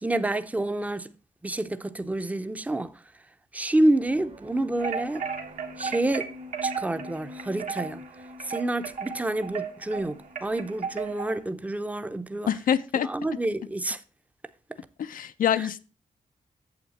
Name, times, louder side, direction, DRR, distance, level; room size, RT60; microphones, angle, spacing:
voice 1, 0.0-1.1 1.4-2.9 3.5-5.2 5.8-6.3 6.6-8.0 8.4-12.5 13.0-14.0, right 1 dB, 10° right, 0.6 m, -28 dB
sound 1, 3.7-11.3, left 3 dB, 45° right, 1.1 m, -47 dB
sound 2, 4.8-11.4, right 6 dB, 65° right, 1.3 m, -35 dB
voice 2, 12.5-13.1 15.0-15.8, left 9 dB, 85° left, 0.6 m, -25 dB
8.7 x 7.2 x 4.1 m
wide cardioid pair, 105°, 14 cm